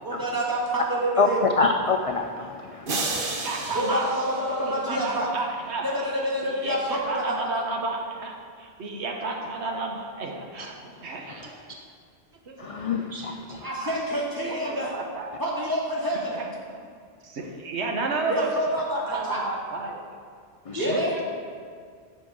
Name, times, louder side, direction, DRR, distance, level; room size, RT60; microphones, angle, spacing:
voice 1, 0.0-1.4 3.7-5.3 5.8-7.4 13.6-14.9 15.4-16.4 18.3-19.4 20.7-21.2, right 1 dB, 20° right, -5 dB, 1.6 m, -27 dB
voice 2, 1.2-3.4 12.6-13.7 20.7-20.9, left 4 dB, 65° left, 4 dB, 0.3 m, -26 dB
sound 1, 2.9-5.2, right 3 dB, 55° right, 1.0 m, -32 dB
voice 3, 3.4-6.1 6.6-11.7 12.5-12.9 13.2-13.4 13.8-13.9 14.5-15.3 16.3-16.5 17.2-20.2 20.8-21.0, right 3 dB, 75° right, 1 dB, 1.2 m, -32 dB
7.2 x 5.1 x 6.2 m, 2.1 s
omnidirectional pair, 1.1 m